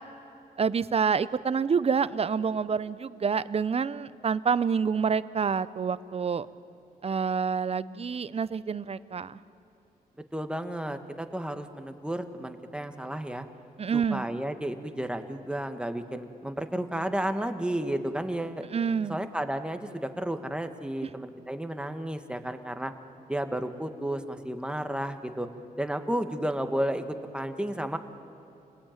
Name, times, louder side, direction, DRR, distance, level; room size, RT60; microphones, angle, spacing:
voice 1, 0.6-6.5 7.0-9.4 13.8-14.2 18.7-19.2 21.0-21.1, right 6 dB, 40° right, 16 dB, 0.7 m, -27 dB
voice 2, 10.3-13.4 13.9-18.7 19.1-22.9 23.3-25.5 25.8-27.0 27.3-28.0, right 1 dB, 5° right, 7 dB, 1.7 m, -32 dB
28.5 x 20.0 x 9.2 m, 2.8 s
cardioid pair, 75°, 16 cm